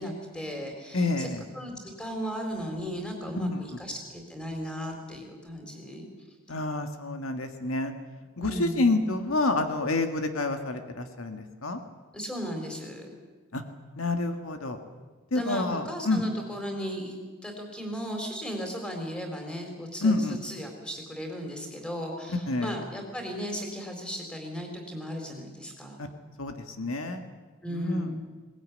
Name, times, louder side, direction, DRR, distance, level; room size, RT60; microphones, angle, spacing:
voice 1, 0.0-1.3 1.5-6.1 8.4-9.0 12.1-13.1 15.3-26.0 27.6-28.2, equal, 5° left, 3 dB, 4.1 m, -36 dB
voice 2, 0.9-1.4 3.4-3.6 6.5-7.9 8.4-11.8 13.5-13.6 14.0-14.8 15.3-16.2 20.0-20.4 22.5-22.8 26.0-26.1 26.4-27.2 27.7-28.1, left 2 dB, 75° left, 6 dB, 1.7 m, -28 dB
21.0 x 19.0 x 9.8 m, 1.4 s
head